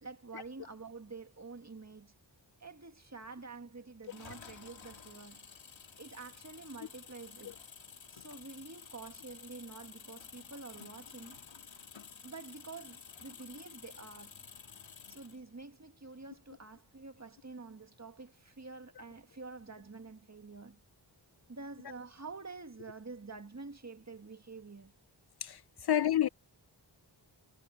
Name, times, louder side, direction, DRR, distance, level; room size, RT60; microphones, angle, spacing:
voice 1, 0.0-2.1 2.6-5.5 6.0-7.6 8.1-11.4 12.2-14.3 15.1-20.8 21.5-24.9, right 4 dB, 35° right, 1.8 m, -48 dB
sound 1, 4.0-15.4, left 6 dB, 85° left, 1.8 m, -52 dB
voice 2, 25.4-26.3, left 11 dB, 60° left, 0.5 m, -30 dB
wide cardioid pair, 85°, 45 cm